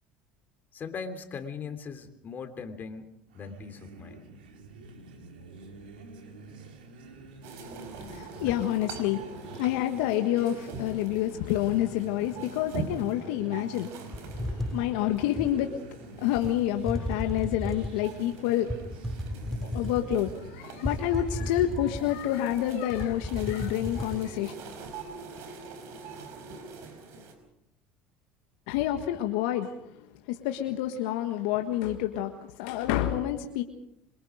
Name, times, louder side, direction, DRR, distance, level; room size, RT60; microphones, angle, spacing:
voice 1, 0.7-4.2 8.5-8.6, left 5 dB, 40° left, 8 dB, 3.2 m, -39 dB
sound 1, 3.3-22.8, right 3 dB, 85° right, 3.7 m, -48 dB
sound 2, 7.4-27.3, right 4 dB, 65° right, 5.3 m, -44 dB
voice 2, 8.0-15.8 16.2-18.8 19.5-24.5 28.7-33.6, left 12 dB, 75° left, 5 dB, 1.6 m, -28 dB
sound 3, 14.1-15.6 16.4-16.5 16.9-18.0 18.7-20.4 20.8-22.3 22.6-22.7 23.0-24.2, left 1 dB, 5° left, 3.6 m, -34 dB
27.0 x 23.0 x 5.0 m, 0.78 s
hypercardioid pair, 75°, 5 cm